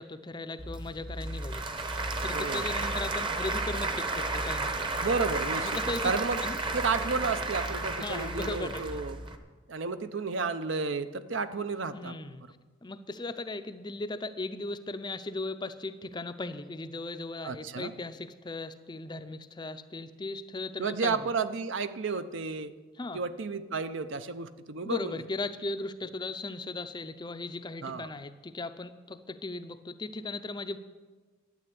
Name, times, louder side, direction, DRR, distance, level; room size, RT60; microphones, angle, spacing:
voice 1, 0.0-1.6 2.2-4.9 5.6-6.1 6.4-6.6 8.0-9.0 11.9-12.4 12.8-21.2 23.0-23.2 24.8-30.8, left 2 dB, 20° left, 10 dB, 0.5 m, -37 dB
Applause / Crowd, 0.6-9.4, right 2 dB, 25° right, 0.9 m, -32 dB
voice 2, 2.3-2.7 5.0-5.8 6.0-6.4 6.7-9.2 9.7-12.2 17.4-17.9 20.8-22.7 23.1-25.2 27.8-28.1, right 4 dB, 65° right, 12 dB, 0.7 m, -32 dB
12.0 x 8.9 x 8.5 m, 1.3 s
head